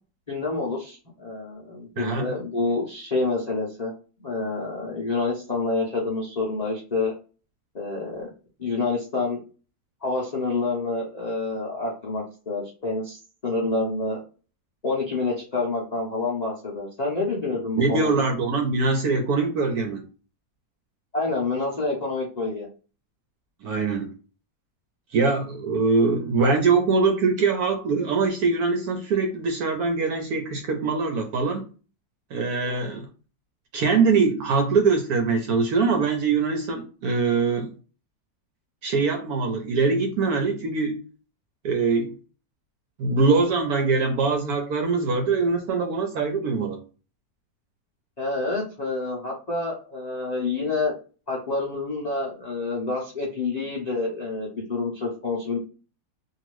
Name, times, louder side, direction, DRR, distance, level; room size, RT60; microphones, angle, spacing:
voice 1, 0.3-3.9 4.2-7.1 7.7-8.3 8.6-9.4 10.0-14.2 14.8-18.1 21.1-22.7 32.6-32.9 48.2-51.0 51.3-55.6, left 3 dB, 75° left, -4 dB, 0.3 m, -28 dB
voice 2, 2.0-2.3 17.8-20.1 23.6-24.1 25.1-31.6 32.3-33.0 33.7-37.7 38.8-41.0 41.6-42.1 43.0-46.8, right 4 dB, 70° right, 4 dB, 0.9 m, -23 dB
2.8 x 2.5 x 3.0 m, 0.35 s
omnidirectional pair, 2.0 m